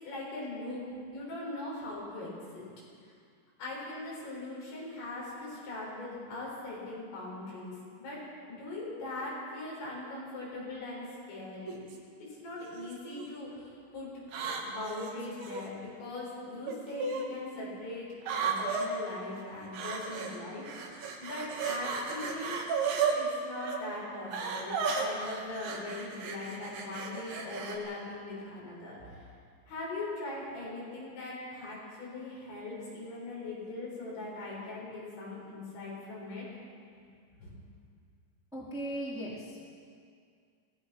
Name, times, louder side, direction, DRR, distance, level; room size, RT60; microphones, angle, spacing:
voice 1, 0.0-2.6 3.6-11.8 12.2-14.2 14.6-18.1 18.4-22.6 23.2-29.3 29.7-36.5 37.4-37.5, left 2 dB, 70° left, -5 dB, 9.2 m, -40 dB
sound 1, 11.7-12.0 12.7-13.3 14.3-15.7 16.7-17.3 18.2-18.9 19.7-20.4 20.6-23.2 23.6-23.8 24.3-27.8, right 5 dB, 70° right, 4.2 m, -34 dB
voice 2, 38.5-39.7, right 1 dB, ahead, -6 dB, 2.7 m, -38 dB
23.5 x 18.5 x 6.3 m, 2.2 s
omnidirectional pair, 5.5 m